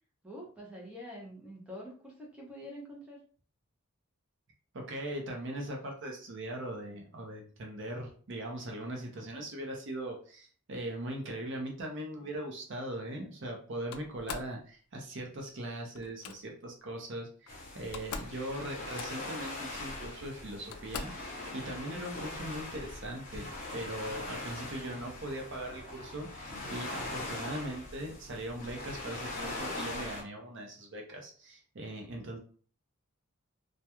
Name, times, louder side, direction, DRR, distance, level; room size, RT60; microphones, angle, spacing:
voice 1, 0.2-3.2, equal, 5° right, -3 dB, 0.6 m, -46 dB
voice 2, 4.7-32.4, right 1 dB, 55° right, 1 dB, 0.6 m, -40 dB
Slam, 13.9-14.6 15.9-16.4 17.5-17.6 17.8-18.4 18.7-19.4 20.1-20.2 20.7-21.3, left 5 dB, 80° left, 0.3 m, -42 dB
sound 1, 17.5-30.2, left 2 dB, 40° left, 0.8 m, -41 dB
2.2 x 2.2 x 2.9 m, 0.43 s
head